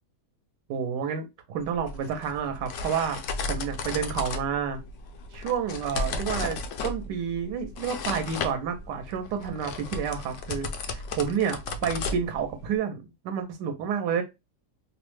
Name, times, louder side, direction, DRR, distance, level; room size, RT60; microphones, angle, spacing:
voice 1, 0.7-3.2 3.5-4.8 5.3-14.2, right 7 dB, 85° right, 1.2 m, -30 dB
sound 1, 1.6-12.8, left 3 dB, 80° left, 0.6 m, -35 dB
3.2 x 2.0 x 3.0 m
omnidirectional pair, 1.8 m